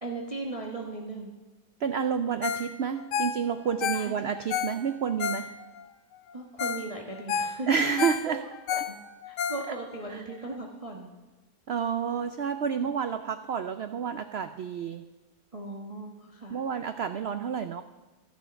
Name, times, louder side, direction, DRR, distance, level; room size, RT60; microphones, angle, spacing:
voice 1, 0.0-1.3 3.9-4.4 6.3-7.7 8.3-8.4 8.7-9.0 9.3-11.1 15.5-16.6, right 2 dB, 20° right, 0 dB, 1.2 m, -38 dB
voice 2, 1.8-5.5 7.7-8.4 8.8-8.9 10.1-10.2 11.7-15.1 16.5-17.8, right 7 dB, 80° right, 9 dB, 0.5 m, -29 dB
Ringtone, 2.4-2.7 3.0-5.9 6.3-6.4 6.6-6.9 7.1-10.0 10.5-10.6, left 7 dB, 90° left, 1.3 m, -31 dB
13.0 x 9.3 x 6.9 m, 1.2 s
omnidirectional pair, 1.8 m